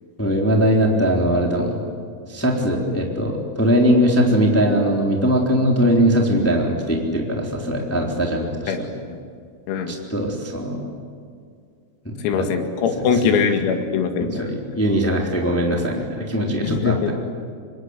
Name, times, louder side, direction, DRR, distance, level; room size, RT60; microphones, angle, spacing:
voice 1, 0.2-1.8 2.3-8.9 9.9-10.9 12.0-12.5 13.0-13.3 14.2-17.1, equal, 5° left, 0 dB, 2.5 m, -20 dB
voice 2, 12.2-14.5 16.6-17.1, left 6 dB, 90° left, 5 dB, 4.9 m, -22 dB
26.5 x 22.5 x 9.8 m, 2.2 s
omnidirectional pair, 6.0 m